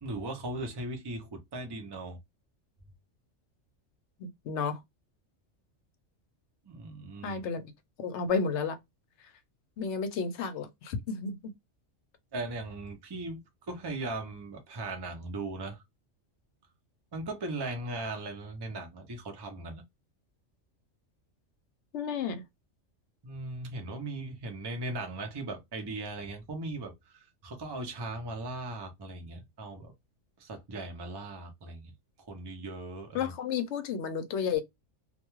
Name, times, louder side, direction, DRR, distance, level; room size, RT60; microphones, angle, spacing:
voice 1, 0.0-2.2 6.7-7.4 12.3-15.8 17.1-19.8 23.2-29.9 30.4-31.9 32.2-33.3, right 2 dB, 30° right, 0.5 m, -38 dB
voice 2, 4.2-4.8 7.2-7.7 8.0-8.8 9.8-11.4 21.9-22.4 33.1-34.6, left 6 dB, 70° left, 0.8 m, -32 dB
2.4 x 2.2 x 2.9 m
omnidirectional pair, 1.3 m